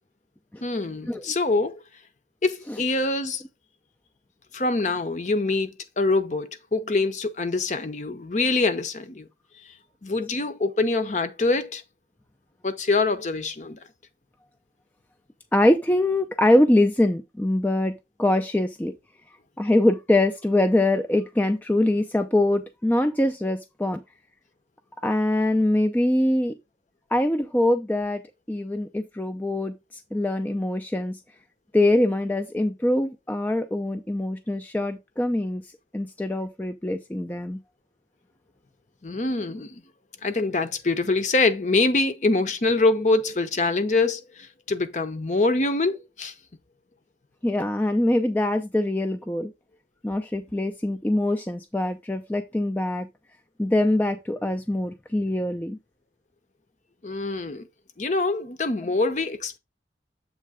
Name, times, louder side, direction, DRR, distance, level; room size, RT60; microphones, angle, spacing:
voice 1, 0.6-1.8 2.4-3.4 4.5-9.3 10.0-11.8 12.6-13.8 39.0-39.8 40.2-46.3 57.0-57.7 58.0-59.6, left 3 dB, 40° left, 0.7 m, -24 dB
voice 2, 15.5-17.9 18.2-18.9 19.6-24.0 25.0-26.5 27.1-28.2 28.5-29.7 30.1-31.2 31.7-35.6 35.9-37.6 47.4-49.5 50.0-53.1 53.6-55.8, left 1 dB, 10° left, 0.4 m, -23 dB
7.5 x 3.2 x 4.8 m
head